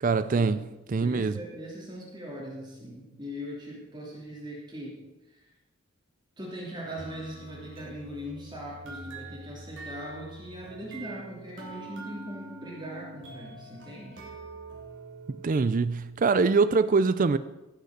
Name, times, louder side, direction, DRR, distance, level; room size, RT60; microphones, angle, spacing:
voice 1, 0.0-1.4 15.3-17.4, right 4 dB, 40° right, 0.4 m, -24 dB
voice 2, 1.0-5.0 5.3-5.5 6.4-14.3, equal, 20° right, 2.9 m, -40 dB
sound 1, 7.0-15.6, right 2 dB, 60° right, 2.9 m, -45 dB
16.5 x 6.6 x 6.6 m
head